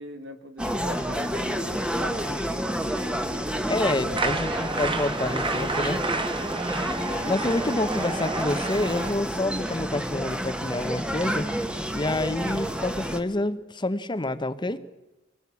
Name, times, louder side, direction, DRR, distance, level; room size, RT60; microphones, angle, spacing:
voice 1, 0.0-3.2 3.9-4.8, right 1 dB, 90° right, 7 dB, 2.3 m, -43 dB
sound 1, 0.6-13.2, equal, 5° right, 1.2 m, -30 dB
voice 2, 3.7-6.0 7.3-11.5 11.9-14.8, left 1 dB, 25° left, 12 dB, 0.9 m, -28 dB
sound 2, 4.1-9.1, right 3 dB, 25° right, 1.3 m, -30 dB
24.5 x 19.0 x 8.3 m, 1.1 s
head